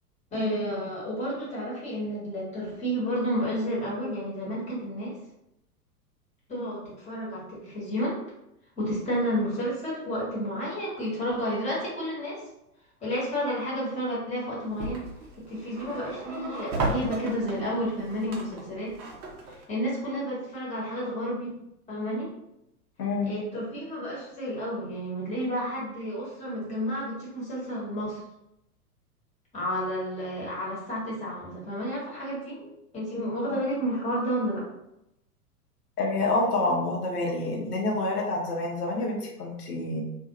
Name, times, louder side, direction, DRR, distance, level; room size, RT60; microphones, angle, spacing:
voice 1, 0.3-5.1 6.5-8.2 8.8-12.4 13.0-15.0 15.5-18.9 19.5-21.5 21.9-22.3 23.2-28.2 29.5-34.6, equal, 15° left, -6 dB, 1.2 m, -31 dB
sound 1, 14.6-19.6, right 2 dB, 40° right, 0.8 m, -34 dB
voice 2, 23.0-23.3 33.5-33.6 36.0-40.0, left 2 dB, 75° left, -1 dB, 0.8 m, -27 dB
2.4 x 2.3 x 2.9 m, 0.85 s
figure-of-eight pair, 100°, 47 cm